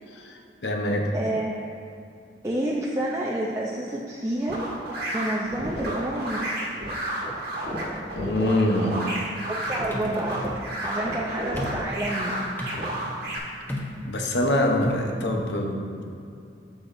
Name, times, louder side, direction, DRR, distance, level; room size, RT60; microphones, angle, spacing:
voice 1, 0.1-1.1 8.1-9.0 13.2-13.3 14.0-16.0, left 1 dB, 70° left, 2 dB, 0.9 m, -25 dB
voice 2, 1.1-1.7 2.4-4.6 5.1-6.7 9.5-10.5 10.8-12.4, right 1 dB, 15° right, -4 dB, 0.5 m, -29 dB
sound 1, 4.5-13.4, right 1 dB, 60° right, 1.4 m, -31 dB
sound 2, 8.9-15.2, left 1 dB, 10° left, 0.8 m, -36 dB
8.8 x 7.1 x 2.6 m, 2.5 s
head